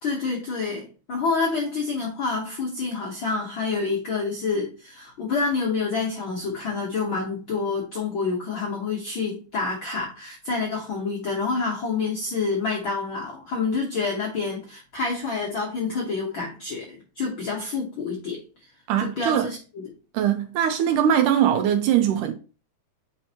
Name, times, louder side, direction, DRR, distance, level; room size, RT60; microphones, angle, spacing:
voice 1, 0.0-18.4 19.0-19.8, left 4 dB, 65° left, 1.2 m, -28 dB
voice 2, 18.9-19.5 20.1-22.3, right 9 dB, 75° right, 2.0 m, -21 dB
8.7 x 4.2 x 2.9 m
omnidirectional pair, 4.0 m